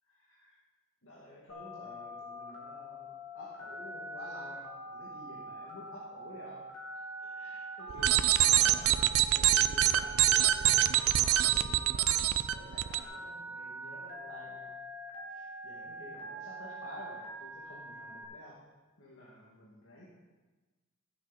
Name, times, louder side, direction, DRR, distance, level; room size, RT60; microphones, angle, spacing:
voice 1, 0.1-0.5 1.0-6.7 7.2-9.0 9.3-14.7 15.3-18.6 19.0-20.0, left 1 dB, 70° left, -5 dB, 2.3 m, -51 dB
Telephone, 1.5-18.2, right 1 dB, 85° left, 2.4 m, -44 dB
sound 1, 7.9-13.0, right 12 dB, 90° right, 0.5 m, -25 dB
14.0 x 8.1 x 4.2 m, 1.2 s
head